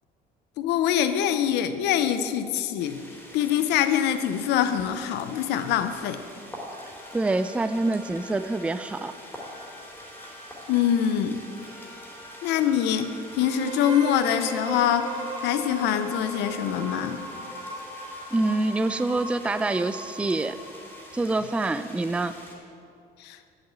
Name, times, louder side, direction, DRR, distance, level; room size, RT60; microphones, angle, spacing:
voice 1, 0.6-3.0 3.3-6.2 10.7-11.4 12.4-15.1 15.4-17.2 23.2-23.4, left 9 dB, 85° left, 10 dB, 0.7 m, -24 dB
sound 1, 2.8-22.6, equal, 10° left, 2.9 m, -46 dB
sound 2, 6.6-20.4, equal, 30° left, 2.5 m, -47 dB
voice 2, 7.1-9.1 18.3-20.6 21.1-22.3, right 2 dB, 5° right, 12 dB, 0.3 m, -26 dB
sound 3, 13.4-21.2, right 2 dB, 40° right, 2.7 m, -38 dB
8.3 x 7.9 x 8.0 m, 2.5 s
cardioid pair, 110°, 17 cm